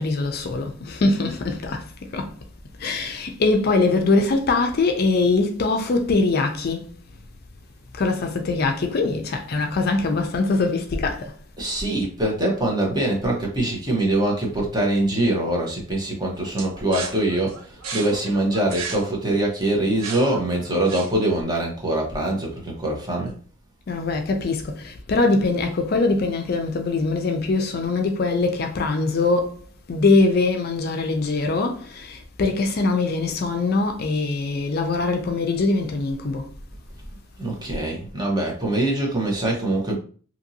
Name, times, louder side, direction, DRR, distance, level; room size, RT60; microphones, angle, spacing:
voice 1, 0.0-2.4 2.8-7.0 7.9-11.4 23.9-29.6 29.9-36.5, left 3 dB, 50° left, 0.4 m, -22 dB
voice 2, 11.6-23.3 37.4-40.0, right 1 dB, 20° right, 0.8 m, -23 dB
sound 1, 16.6-21.4, right 5 dB, 85° right, 0.6 m, -35 dB
2.8 x 2.6 x 2.7 m
head